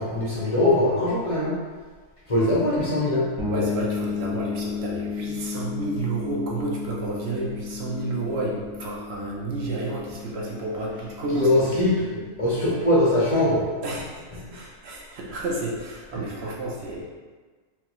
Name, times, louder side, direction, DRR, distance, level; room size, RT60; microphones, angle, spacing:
voice 1, 0.0-1.6 2.3-3.3 11.3-13.7, left 1 dB, 35° left, -7 dB, 0.6 m, -22 dB
sound 1, 3.4-13.0, left 5 dB, 85° right, 1.4 m, -34 dB
voice 2, 3.5-11.8 13.8-17.0, right 2 dB, 60° right, -3 dB, 0.7 m, -31 dB
4.4 x 2.0 x 2.9 m, 1.4 s
omnidirectional pair, 1.5 m